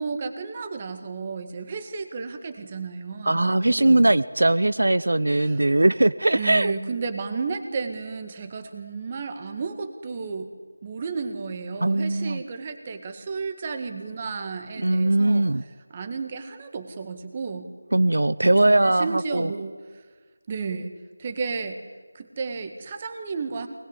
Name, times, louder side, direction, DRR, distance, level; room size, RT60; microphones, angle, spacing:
voice 1, 0.0-4.1 5.4-5.6 6.3-10.5 10.8-15.5 15.9-17.7 18.6-20.0 20.5-21.8 22.1-23.7, right 4 dB, 20° right, 7 dB, 1.7 m, -32 dB
voice 2, 3.3-6.7 11.8-12.4 14.8-15.6 17.9-19.5, right 2 dB, 70° right, 14 dB, 0.7 m, -20 dB
23.5 x 20.0 x 8.2 m, 1.5 s
figure-of-eight pair, 170°, 0 cm